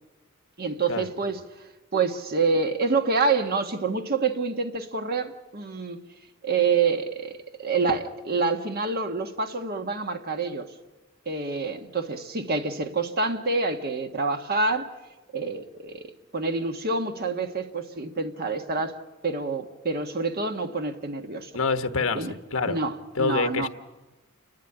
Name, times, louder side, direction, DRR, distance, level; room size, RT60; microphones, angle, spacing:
voice 1, 0.6-1.4 1.9-6.0 6.4-10.7 11.2-14.9 15.3-16.0 16.3-18.9 19.2-21.5 22.1-22.3 22.7-23.7, right 4 dB, 50° right, 1.4 m, -27 dB
voice 2, 21.5-22.8 23.2-23.7, left 4 dB, 70° left, 1.2 m, -26 dB
28.5 x 11.5 x 9.9 m
head